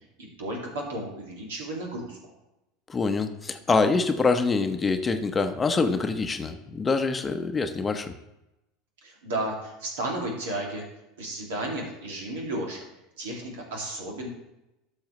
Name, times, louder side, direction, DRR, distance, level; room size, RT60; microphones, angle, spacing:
voice 1, 0.2-2.2 9.0-10.9 11.2-12.8 13.2-14.3, right 1 dB, 75° right, -1 dB, 2.5 m, -33 dB
voice 2, 2.9-8.1, left 4 dB, 25° left, 7 dB, 0.8 m, -25 dB
12.0 x 6.5 x 3.2 m, 0.91 s
hypercardioid pair, 85°, 0 cm